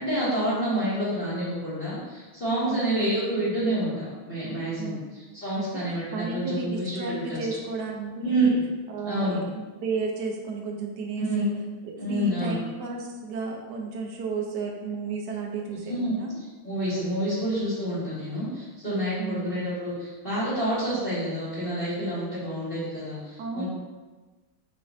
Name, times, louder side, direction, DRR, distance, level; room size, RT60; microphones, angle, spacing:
voice 1, 0.0-5.0 5.3-7.6 8.2-8.6 9.0-9.4 11.2-11.5 12.0-12.6 15.9-16.1 16.6-23.7, right 1 dB, 30° left, -13 dB, 1.5 m, -28 dB
voice 2, 2.6-3.0 4.8-5.0 5.6-5.9 6.1-8.6 8.9-11.5 11.8-16.4 19.2-19.5 23.4-23.7, right 4 dB, 65° right, 1 dB, 1.1 m, -33 dB
6.1 x 3.3 x 2.6 m, 1.3 s
omnidirectional pair, 2.2 m